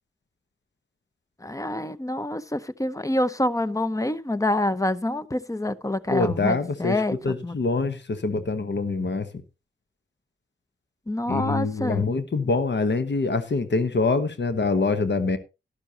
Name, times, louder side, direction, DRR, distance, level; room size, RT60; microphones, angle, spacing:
voice 1, 1.4-7.2 7.4-7.5 11.1-12.0, left 1 dB, 15° left, 0.7 m, -26 dB
voice 2, 6.1-9.3 11.3-15.4, left 3 dB, 60° left, 1.2 m, -25 dB
12.0 x 11.5 x 2.9 m
wide cardioid pair, 75°, 20 cm